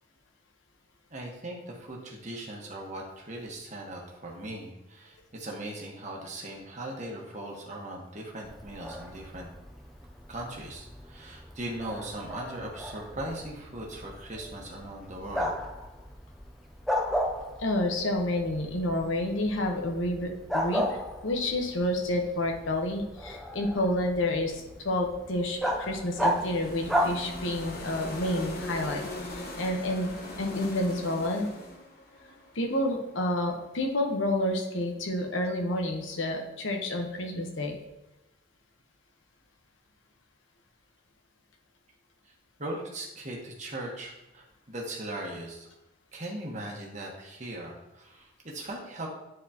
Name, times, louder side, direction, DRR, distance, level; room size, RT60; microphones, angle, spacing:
voice 1, 1.1-9.5 10.3-15.5 42.6-45.7 46.1-49.1, right 1 dB, 40° right, -1 dB, 1.3 m, -39 dB
Bark, 8.4-27.8, equal, ahead, 0.5 m, -35 dB
voice 2, 17.6-21.0 21.2-29.0 29.3-30.1 30.4-31.5 32.5-37.8, left 1 dB, 80° left, 2 dB, 1.0 m, -29 dB
sound 1, 25.3-33.4, left 1 dB, 50° left, 1.1 m, -40 dB
9.7 x 4.1 x 2.9 m, 0.95 s
head